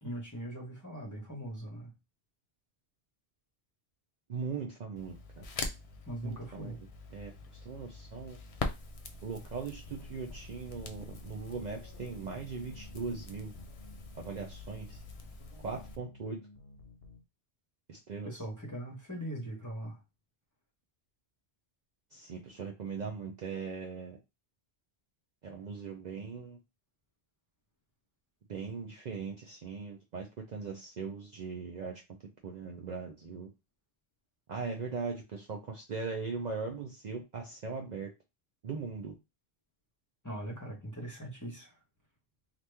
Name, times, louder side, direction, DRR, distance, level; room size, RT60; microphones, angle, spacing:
voice 1, 0.0-1.9 6.1-6.8 18.2-20.0 40.2-41.7, right 1 dB, 20° left, 1.1 m, -40 dB
voice 2, 4.3-5.4 6.2-7.3 7.6-8.4 9.2-13.5 14.1-15.0 15.6-16.4 17.9-18.4 22.1-24.2 25.4-26.6 28.5-32.0 32.4-33.5 34.5-38.1 38.6-39.1, right 5 dB, 50° right, 0.6 m, -39 dB
Crackle, 5.0-16.0, left 3 dB, 50° left, 0.4 m, -44 dB
sound 1, 9.9-17.2, left 3 dB, 75° left, 0.8 m, -55 dB
2.9 x 2.5 x 3.3 m
omnidirectional pair, 1.1 m